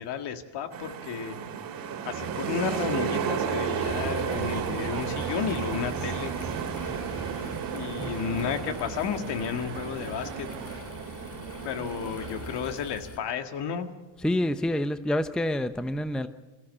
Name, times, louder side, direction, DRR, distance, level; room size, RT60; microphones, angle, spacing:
voice 1, 0.0-1.4 2.1-6.3 7.7-10.5 11.6-13.9, left 7 dB, 60° left, 7 dB, 1.9 m, -32 dB
sound 1, 0.7-12.8, right 7 dB, 50° right, 2.3 m, -33 dB
sound 2, 3.2-10.8, right 11 dB, 85° right, 1.4 m, -43 dB
sound 3, 3.8-13.2, left 3 dB, 30° left, 1.8 m, -43 dB
voice 2, 14.2-16.3, left 1 dB, ahead, 11 dB, 0.6 m, -27 dB
21.5 x 14.5 x 9.6 m, 1.2 s
cardioid pair, 110°, 46 cm